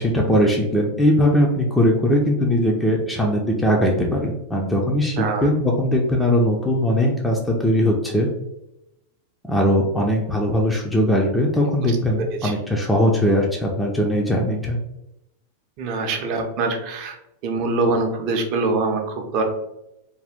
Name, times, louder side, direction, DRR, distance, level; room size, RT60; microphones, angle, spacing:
voice 1, 0.0-8.3 9.4-14.8, equal, 5° left, -2 dB, 0.4 m, -20 dB
voice 2, 5.2-5.5 11.8-11.9 12.4-12.5 15.8-17.2 17.4-19.4, right 3 dB, 45° right, 3 dB, 0.6 m, -24 dB
2.6 x 2.3 x 3.4 m, 0.88 s
figure-of-eight pair, 90°, 0 cm